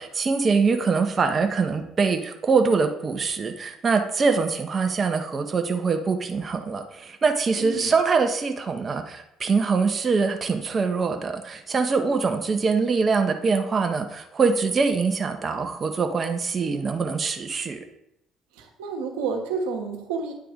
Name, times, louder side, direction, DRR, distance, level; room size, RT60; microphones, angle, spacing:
voice 1, 0.0-17.8, right 4 dB, 40° right, 5 dB, 0.8 m, -23 dB
voice 2, 7.6-7.9 18.6-20.3, right 5 dB, 80° right, 2 dB, 1.2 m, -30 dB
9.3 x 3.4 x 5.0 m, 0.81 s
hypercardioid pair, 60°, 0 cm